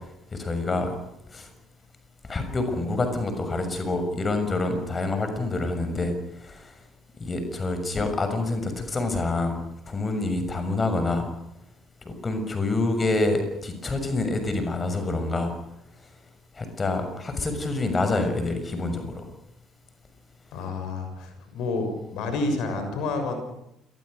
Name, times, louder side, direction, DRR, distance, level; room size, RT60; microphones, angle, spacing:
voice 1, 0.3-0.9 1.3-1.5 2.3-6.1 6.4-6.7 7.2-9.6 9.9-11.3 12.0-15.5 16.6-19.2, left 2 dB, 25° left, 8 dB, 6.5 m, -27 dB
voice 2, 20.5-23.4, left 3 dB, 55° left, 6 dB, 6.6 m, -29 dB
27.5 x 21.0 x 6.7 m, 0.87 s
figure-of-eight pair, 50°, 0 cm